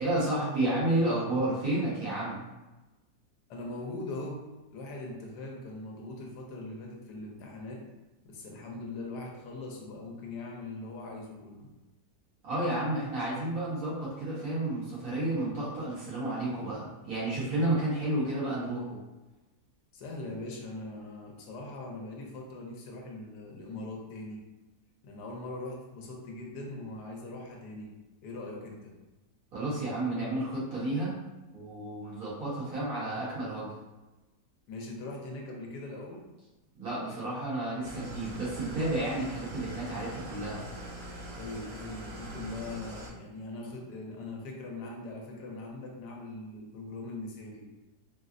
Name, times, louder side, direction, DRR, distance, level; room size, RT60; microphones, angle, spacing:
voice 1, 0.0-2.4 12.4-19.0 29.5-31.1 31.5-33.7 36.8-40.6, right 1 dB, 60° right, -8 dB, 1.7 m, -31 dB
voice 2, 3.5-4.4 4.7-7.8 8.2-11.7 19.9-24.4 25.0-27.9 28.2-28.9 34.7-36.3 41.3-47.7, left 2 dB, 80° left, 0 dB, 1.2 m, -41 dB
Engine starting / Idling, 37.8-43.1, equal, 80° right, 1.6 m, -42 dB
3.9 x 2.0 x 2.5 m, 1.1 s
omnidirectional pair, 1.8 m